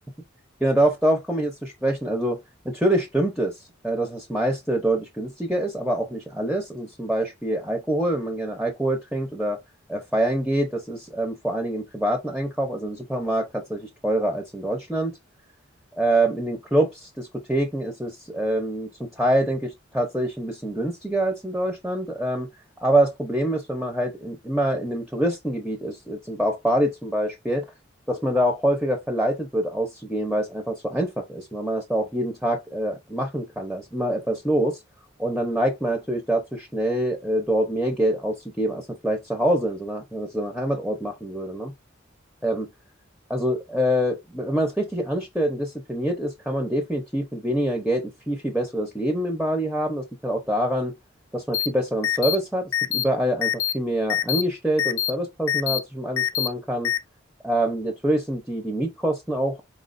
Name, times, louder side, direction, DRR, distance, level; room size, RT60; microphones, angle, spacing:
voice 1, 0.6-2.4 2.6-3.6 3.8-9.6 9.9-15.2 16.0-22.5 22.8-27.7 28.1-34.8 35.2-41.7 42.4-42.7 43.3-50.9 51.3-56.9 57.4-59.6, right 1 dB, ahead, 0.7 m, -25 dB
sound 1, 51.5-51.7 52.0-52.4 52.7-53.0 53.4-53.7 54.1-54.4 54.8-55.1 55.5-55.8 56.2-56.5 56.8-57.0, left 10 dB, 75° left, 0.6 m, -24 dB
4.5 x 3.1 x 2.5 m
head